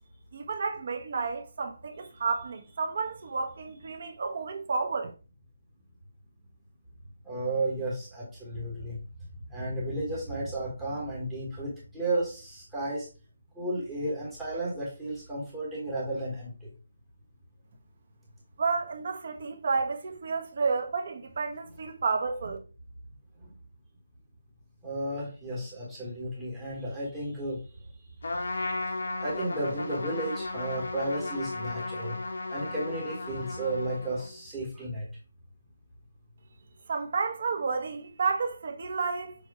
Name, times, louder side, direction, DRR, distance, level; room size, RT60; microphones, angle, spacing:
voice 1, 0.3-5.1 18.6-22.6 36.9-39.3, right 4 dB, 35° right, 1.1 m, -31 dB
voice 2, 7.2-9.0 9.5-13.1 13.5-16.7 23.4-23.5 24.8-27.9 28.3-28.4 29.2-32.2 32.5-35.1, right 1 dB, 5° right, 1.2 m, -33 dB
Trumpet, 28.2-34.4, left 2 dB, 65° left, 1.4 m, -35 dB
6.9 x 2.9 x 4.7 m
hypercardioid pair, 180°, 0 cm